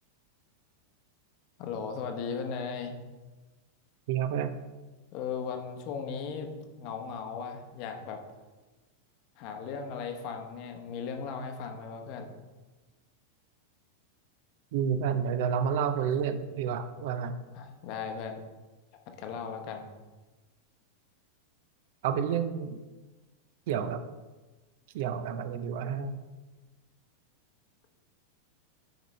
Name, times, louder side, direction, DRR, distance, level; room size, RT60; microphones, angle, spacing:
voice 1, 1.6-3.0 5.1-8.2 9.4-12.3 17.5-18.4 19.2-19.9, left 6 dB, 45° left, 5 dB, 1.0 m, -37 dB
voice 2, 4.1-4.5 14.7-17.4 22.0-22.8 23.7-24.0 24.9-26.2, right 7 dB, 50° right, 10 dB, 0.5 m, -30 dB
9.0 x 5.0 x 3.2 m, 1.2 s
figure-of-eight pair, 90°, 0 cm